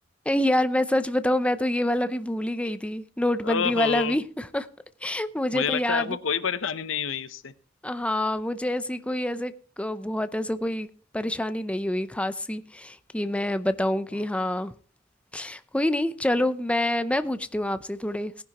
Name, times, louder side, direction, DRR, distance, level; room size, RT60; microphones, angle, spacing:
voice 1, 0.3-4.7 5.0-6.2 7.8-10.9 11.1-14.7 15.3-18.4, left 1 dB, 5° left, 0.5 m, -27 dB
voice 2, 3.4-4.2 5.5-7.5, left 6 dB, 90° left, 0.8 m, -28 dB
18.0 x 10.5 x 2.9 m
head